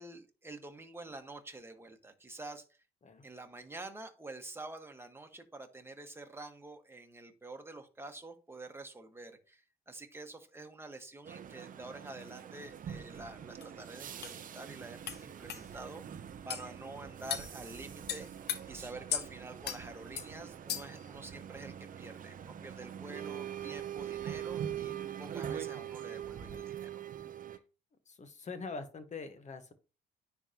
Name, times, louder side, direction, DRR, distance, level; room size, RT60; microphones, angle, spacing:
voice 1, 0.0-2.6 3.2-18.3 18.7-24.9 25.2-27.0, right 2 dB, 10° right, 4 dB, 1.4 m, -48 dB
sound 1, 11.2-27.6, right 9 dB, 45° right, 0.6 m, -43 dB
sound 2, 13.6-13.7 14.2-14.4 15.1-15.2 15.5-15.6 16.5-16.7 17.3-17.5 18.1-18.6 19.1-19.3 19.6-19.8 20.2-20.3 20.7-21.0, left 9 dB, 60° left, 0.9 m, -36 dB
voice 2, 28.1-29.7, left 4 dB, 35° left, 10 dB, 1.2 m, -43 dB
9.8 x 3.5 x 2.9 m, 0.33 s
hypercardioid pair, 60°, 20 cm